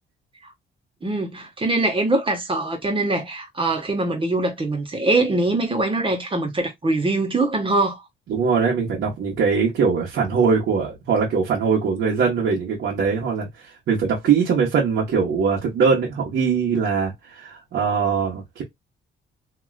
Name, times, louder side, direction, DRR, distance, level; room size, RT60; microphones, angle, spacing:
voice 1, 1.0-8.0, right 2 dB, 25° right, 1.3 m, -23 dB
voice 2, 8.3-18.6, right 5 dB, 70° right, 1.3 m, -21 dB
3.0 x 2.9 x 2.4 m
cardioid pair, 90°, 20 cm